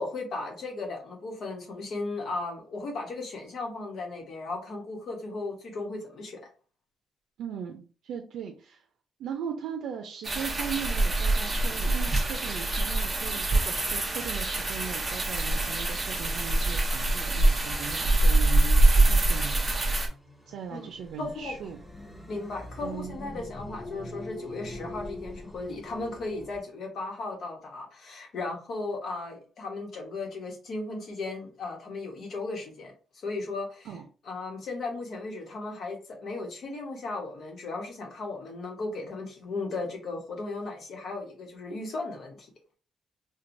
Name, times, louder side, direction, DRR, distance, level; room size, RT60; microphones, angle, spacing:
voice 1, 0.0-6.4 20.7-20.9 21.2-21.6 22.3-33.9 34.3-42.5, left 3 dB, 50° left, 1 dB, 1.0 m, -36 dB
voice 2, 7.4-8.8 9.2-19.6 20.5-21.8 22.8-23.2 33.9-34.0, right 7 dB, 90° right, 3 dB, 0.4 m, -38 dB
sound 1, 10.2-20.1, right 2 dB, 15° right, 0.7 m, -24 dB
sound 2, 18.0-26.6, left 1 dB, 20° left, 0.9 m, -44 dB
4.4 x 2.2 x 2.6 m, 0.38 s
cardioid pair, 180°, 0 cm